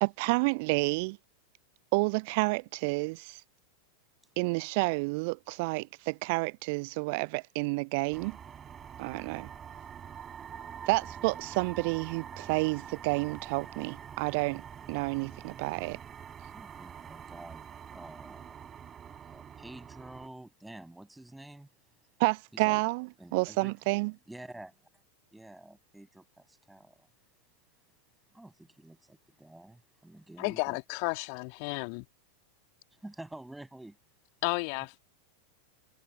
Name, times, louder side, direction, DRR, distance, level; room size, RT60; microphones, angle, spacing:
voice 1, 0.0-1.2 1.9-3.2 4.4-8.3 9.0-9.5 10.9-14.6 14.9-16.0 22.2-23.1 23.3-24.1, right 28 dB, 45° right, 0.4 m, -29 dB
sound 1, 8.1-20.3, right 8 dB, 25° right, 5.9 m, -46 dB
voice 2, 16.5-18.6 19.2-21.7 22.5-22.8 23.2-23.7 24.1-24.7 25.3-27.1 28.3-30.8 32.9-34.0, right 1 dB, 5° right, 6.2 m, -49 dB
voice 3, 30.4-32.1 34.4-35.0, left 40 dB or more, 45° left, 2.2 m, -32 dB
figure-of-eight pair, 90°, 0 cm